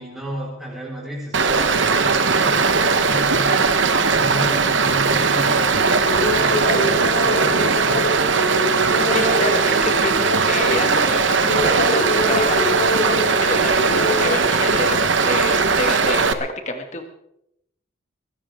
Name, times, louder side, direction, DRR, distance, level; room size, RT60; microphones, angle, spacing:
voice 1, 0.0-3.6 4.1-8.1, equal, ahead, -4 dB, 4.4 m, -32 dB
Stream, 1.3-16.3, right 4 dB, 65° right, 1.1 m, -19 dB
sound 1, 5.8-11.1 11.4-14.4, left 1 dB, 65° left, 5.2 m, -25 dB
voice 2, 9.1-16.3 16.7-17.0, left 2 dB, 35° left, 5 dB, 2.0 m, -28 dB
22.0 x 16.5 x 3.6 m, 0.78 s
head